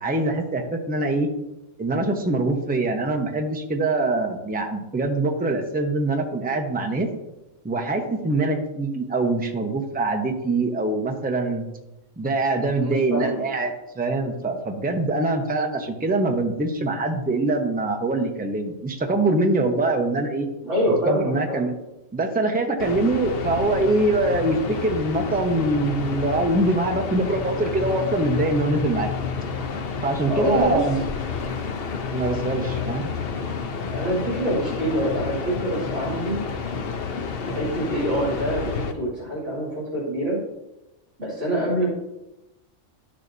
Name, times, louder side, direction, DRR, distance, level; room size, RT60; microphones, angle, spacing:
voice 1, 0.0-1.3 1.8-7.1 7.6-11.7 12.2-20.5 21.1-21.7 22.1-29.1 30.0-31.0 32.1-33.1, right 2 dB, 10° right, 3 dB, 0.6 m, -24 dB
voice 2, 12.8-13.4 20.6-21.6 30.3-31.0 32.7-32.8 33.9-36.4 37.4-40.4 41.2-41.9, equal, 60° right, -7 dB, 3.1 m, -25 dB
sound 1, 22.8-38.9, left 5 dB, 50° left, 0.8 m, -30 dB
12.0 x 6.7 x 2.7 m, 0.96 s
omnidirectional pair, 1.5 m